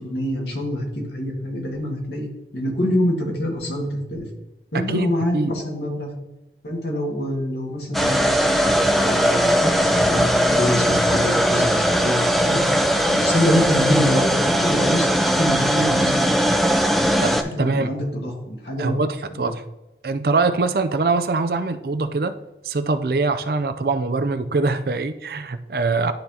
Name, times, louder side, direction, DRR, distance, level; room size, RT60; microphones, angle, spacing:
voice 1, 0.0-2.3 2.5-4.3 4.7-6.1 6.6-12.6 13.1-16.5 17.1-19.0 19.3-19.5, equal, 75° left, 0 dB, 1.8 m, -25 dB
voice 2, 4.7-5.5 17.2-17.9 18.8-19.6 20.0-22.3 22.6-26.1, right 3 dB, 60° right, 10 dB, 0.4 m, -23 dB
sound 1, 7.9-17.4, equal, ahead, 0.3 m, -19 dB
11.5 x 3.9 x 2.8 m, 1.0 s
head